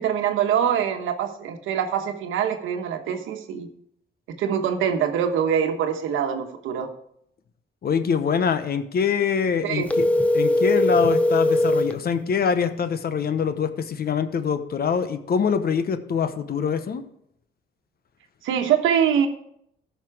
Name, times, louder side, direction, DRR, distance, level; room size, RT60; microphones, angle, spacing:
voice 1, 0.0-3.7 4.4-6.9 9.6-9.9 18.4-19.3, right 8 dB, 85° right, 6 dB, 1.2 m, -24 dB
voice 2, 7.8-10.1 10.3-17.0, left 6 dB, 50° left, 11 dB, 1.0 m, -24 dB
sound 1, 9.9-12.0, left 2 dB, 5° left, 0.9 m, -20 dB
14.5 x 5.8 x 4.8 m, 0.74 s
cardioid pair, 90°, 20 cm